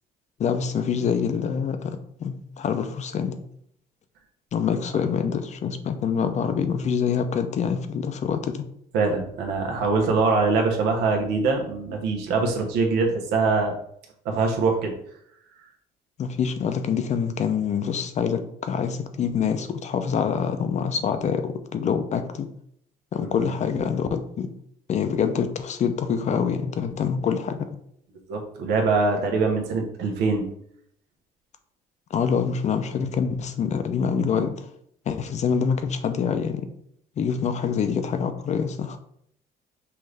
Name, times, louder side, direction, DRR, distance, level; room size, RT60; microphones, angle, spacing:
voice 1, 0.4-3.4 4.5-8.6 16.2-22.5 23.1-24.5 24.9-27.7 32.1-34.7 35.1-36.7 37.2-39.0, left 6 dB, 45° left, 0.5 m, -25 dB
voice 2, 8.9-13.7 14.2-14.9 23.2-23.5 28.3-30.5, right 4 dB, 85° right, 1.0 m, -23 dB
5.6 x 2.6 x 3.3 m
cardioid pair, 110°, 17 cm